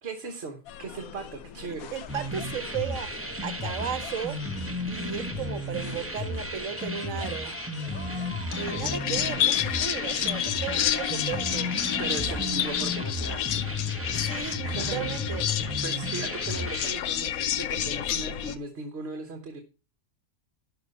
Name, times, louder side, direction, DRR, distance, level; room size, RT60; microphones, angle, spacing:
voice 1, 0.0-1.9 8.5-9.0 12.0-13.5 14.6-15.1 15.8-19.6, right 3 dB, 50° right, 1.4 m, -38 dB
sound 1, 0.7-18.6, left 10 dB, 80° left, 1.1 m, -32 dB
voice 2, 1.6-4.4 4.9-7.5 8.6-11.7 14.1-15.4, right 8 dB, 65° right, 1.3 m, -35 dB
sound 2, 2.1-16.9, left 1 dB, 10° right, 1.1 m, -34 dB
sound 3, 7.9-12.8, left 1 dB, 5° left, 5.4 m, -47 dB
12.0 x 5.0 x 5.4 m
omnidirectional pair, 1.5 m